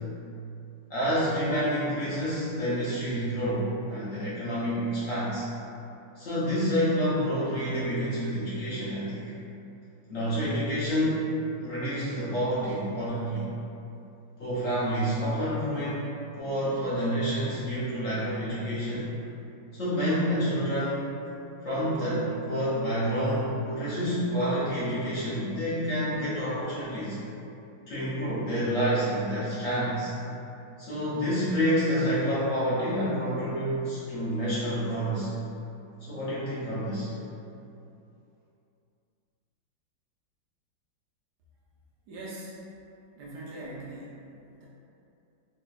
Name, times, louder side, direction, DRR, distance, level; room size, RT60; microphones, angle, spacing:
voice 1, 0.9-5.4 6.2-9.2 10.1-11.3 11.6-13.4 14.4-16.0 16.4-19.1 19.7-21.0 21.6-27.2 27.9-30.1 30.8-35.3 36.0-37.1, equal, 60° left, -10 dB, 1.0 m, -28 dB
Wind instrument woodwind instrument, 21.8-26.6, equal, ahead, 0.5 m, -45 dB
voice 2, 42.1-42.5 43.1-44.2 44.6-44.7, right 1 dB, 75° right, -6 dB, 1.2 m, -41 dB
4.0 x 2.7 x 2.2 m, 2.7 s
omnidirectional pair, 1.9 m